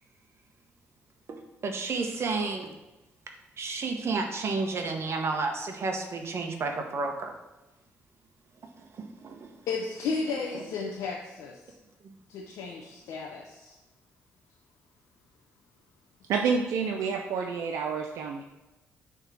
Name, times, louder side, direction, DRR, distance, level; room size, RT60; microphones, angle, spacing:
voice 1, 1.6-2.7 3.6-7.3 9.0-9.5, right 3 dB, 55° right, 4 dB, 1.0 m, -31 dB
voice 2, 9.7-11.7 12.3-13.7, left 4 dB, 80° left, -1 dB, 0.8 m, -34 dB
voice 3, 16.3-18.4, right 5 dB, 80° right, 2 dB, 0.5 m, -28 dB
6.7 x 3.6 x 6.0 m, 1.1 s
supercardioid pair, 60°, 5 cm